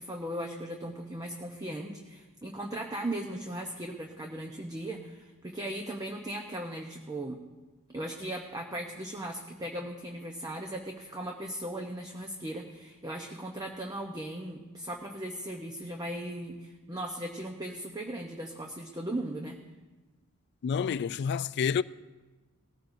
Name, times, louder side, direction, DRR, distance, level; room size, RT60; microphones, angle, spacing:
voice 1, 0.0-7.4 7.9-19.6, right 1 dB, 15° right, 0.8 m, -38 dB
voice 2, 20.6-21.8, left 6 dB, 50° left, 0.3 m, -28 dB
19.5 x 14.5 x 2.6 m
head